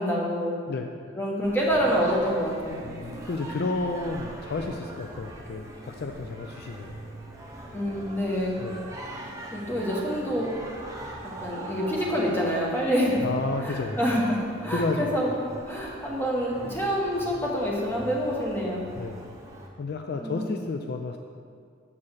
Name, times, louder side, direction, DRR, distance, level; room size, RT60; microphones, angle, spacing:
voice 1, 0.0-0.6 1.1-2.8 7.7-8.6 9.5-10.6 11.4-13.2 13.6-15.4 15.7-18.8 20.2-20.5, equal, 10° left, -4 dB, 1.2 m, -27 dB
voice 2, 0.7-1.0 2.8-7.1 8.6-9.0 13.2-14.0 14.7-15.2 19.0-19.3 19.8-21.2, left 3 dB, 55° left, 4 dB, 0.4 m, -31 dB
Singing, 1.4-19.7, right 1 dB, 15° right, 0.8 m, -41 dB
7.2 x 4.4 x 6.5 m, 2.2 s
head